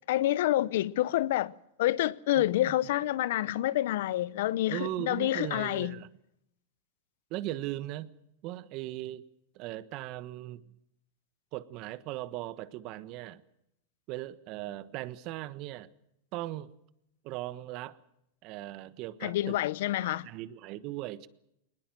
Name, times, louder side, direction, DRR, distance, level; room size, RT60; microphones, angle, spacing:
voice 1, 0.1-1.5 1.8-6.0 19.2-20.3, left 14 dB, 70° left, 0.7 m, -28 dB
voice 2, 2.4-2.8 4.7-6.1 7.3-8.1 8.4-9.3 9.5-10.6 11.5-13.4 14.1-15.9 16.3-16.7 17.2-18.0 18.4-19.6 20.0-21.3, right 15 dB, 50° right, 1.3 m, -38 dB
21.0 x 20.0 x 7.7 m
hypercardioid pair, 120°, 0 cm